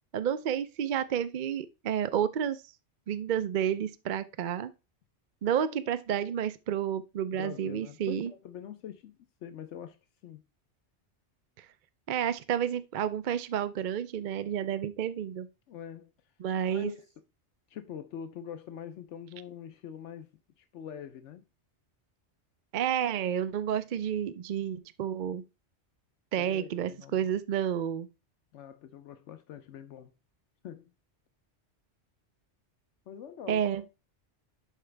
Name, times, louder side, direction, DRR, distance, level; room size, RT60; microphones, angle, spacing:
voice 1, 0.1-2.6 3.1-4.7 5.4-8.3 11.6-11.7 12.1-15.5 16.4-16.9 22.7-25.4 26.3-28.1 33.5-33.8, right 9 dB, 55° right, 0.6 m, -30 dB
voice 2, 7.3-9.2 9.4-10.0 10.2-10.4 15.7-16.1 16.7-17.1 17.7-20.3 20.6-21.4 26.4-27.3 28.5-30.1 30.6-30.9 33.1-33.7, left 9 dB, 85° left, 1.0 m, -44 dB
11.0 x 4.7 x 3.3 m
omnidirectional pair, 1.2 m